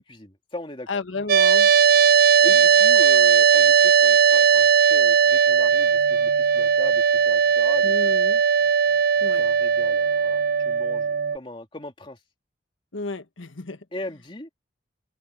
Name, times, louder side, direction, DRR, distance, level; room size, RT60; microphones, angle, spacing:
voice 1, 0.0-0.9 2.4-8.0 9.4-12.2 13.9-14.5, left 1 dB, 25° left, 2.7 m, -39 dB
voice 2, 0.9-1.7 7.8-8.4 9.2-9.4 12.9-13.8, left 3 dB, 90° left, 1.5 m, -32 dB
sound 1, 1.3-11.4, right 7 dB, 50° right, 0.5 m, -18 dB
head